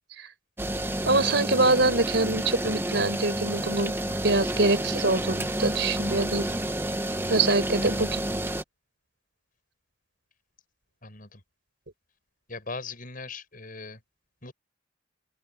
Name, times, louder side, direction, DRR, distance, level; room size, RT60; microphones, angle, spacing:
sound 1, 0.6-8.6, right 1 dB, 10° right, 1.3 m, -30 dB
voice 1, 1.0-3.9 4.2-6.5 7.3-8.2, right 3 dB, 65° right, 5.2 m, -24 dB
voice 2, 11.0-11.4 12.5-14.0 14.4-14.5, left 3 dB, 45° left, 7.3 m, -39 dB
open air
head